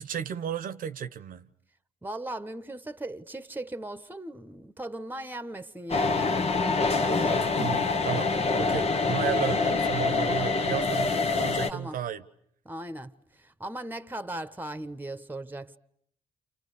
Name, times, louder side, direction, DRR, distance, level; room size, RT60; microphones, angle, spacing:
voice 1, 0.0-1.5 7.6-12.2, right 9 dB, 60° right, 1.1 m, -34 dB
voice 2, 2.0-6.3 7.0-7.5 11.7-12.0 12.6-15.8, right 1 dB, 10° right, 1.4 m, -38 dB
sound 1, 5.9-11.7, left 3 dB, 40° left, 1.5 m, -25 dB
29.5 x 29.5 x 6.9 m
hypercardioid pair, 45°, 16 cm